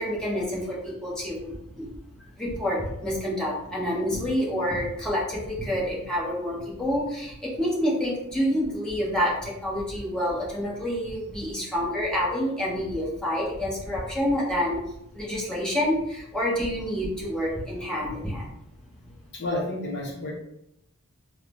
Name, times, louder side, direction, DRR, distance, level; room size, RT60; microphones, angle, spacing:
voice 1, 0.0-1.9 2.4-14.8 15.1-18.5, equal, 5° left, -6 dB, 0.9 m, -28 dB
voice 2, 19.3-20.3, left 1 dB, 50° left, -2 dB, 0.7 m, -30 dB
3.6 x 2.1 x 3.4 m, 0.79 s
head